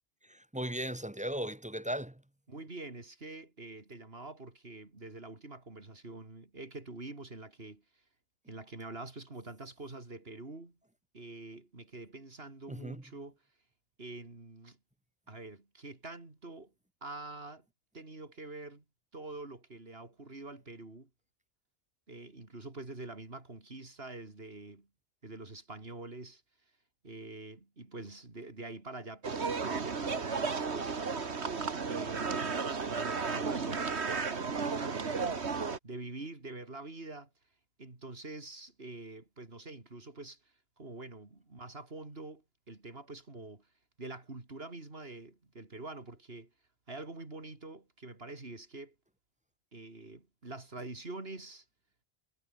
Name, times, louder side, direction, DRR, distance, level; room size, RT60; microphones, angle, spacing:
voice 1, 0.2-2.2 12.7-13.0, right 1 dB, 10° right, 0.8 m, -37 dB
voice 2, 2.5-7.8 8.5-10.8 11.1-13.4 14.0-14.8 15.3-16.7 17.0-17.7 17.9-18.8 19.1-21.1 22.1-24.9 25.2-26.4 27.0-31.3 31.9-35.5 35.8-37.3 37.8-43.7 44.0-46.5 46.9-49.0 49.7-51.7, right 2 dB, 65° right, 3.9 m, -46 dB
sound 1, 29.2-35.8, right 5 dB, 80° right, 2.1 m, -33 dB
omnidirectional pair, 1.1 m